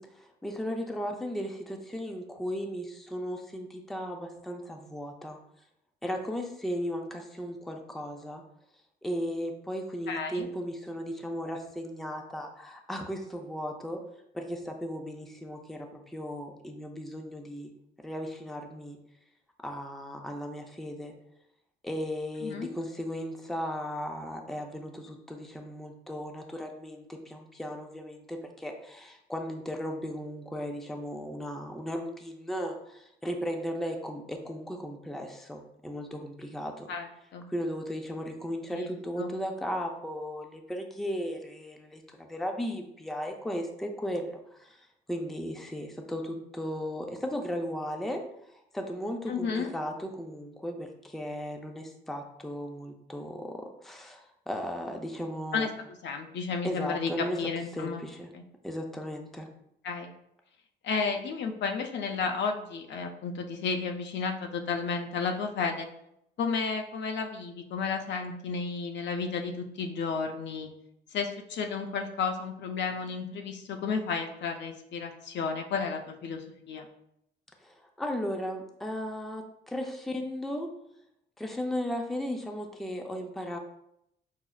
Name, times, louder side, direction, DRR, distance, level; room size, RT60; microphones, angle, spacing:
voice 1, 0.0-5.4 6.0-8.4 9.0-14.0 14.3-17.7 18.0-19.0 19.6-21.1 21.8-36.9 37.5-48.2 48.5-55.7 56.6-57.4 57.7-58.3 58.6-59.5 77.6-80.7 81.4-83.6, equal, ahead, 3 dB, 0.4 m, -36 dB
voice 2, 10.1-10.5 22.4-22.7 36.9-37.1 37.3-37.5 38.7-38.9 39.2-39.3 49.3-49.7 55.5-58.0 58.3-58.4 59.8-60.1 60.8-65.9 66.4-70.7 71.1-76.9, left 5 dB, 65° left, 4 dB, 0.5 m, -32 dB
5.6 x 2.0 x 2.3 m, 0.77 s
cardioid pair, 90°, 20 cm